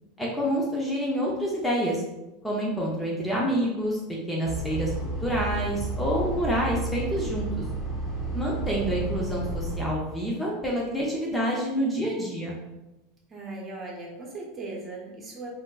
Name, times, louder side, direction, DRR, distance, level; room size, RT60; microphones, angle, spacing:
voice 1, 0.2-2.0 2.4-4.0 4.3-7.5 8.3-12.6, equal, 10° left, -3 dB, 0.7 m, -27 dB
sound 1, 4.4-9.8, right 2 dB, 25° left, 1.1 m, -31 dB
voice 2, 8.8-9.3 13.3-15.5, right 2 dB, 30° right, -2 dB, 1.0 m, -39 dB
3.5 x 2.6 x 2.4 m, 1.0 s
hypercardioid pair, 95°, 0 cm